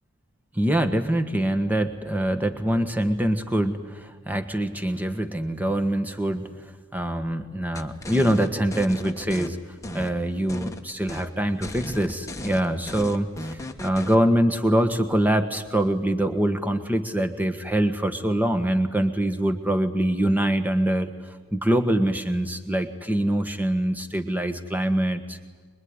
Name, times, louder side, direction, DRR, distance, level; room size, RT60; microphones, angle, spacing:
voice 1, 0.5-6.5 6.9-9.6 9.9-25.4, right 1 dB, 10° right, 7 dB, 1.5 m, -24 dB
sound 1, 7.7-9.5 9.8-10.8 11.1-11.3 11.6-14.2, left 1 dB, 15° left, 1.3 m, -36 dB
25.0 x 22.0 x 9.8 m, 1.5 s
head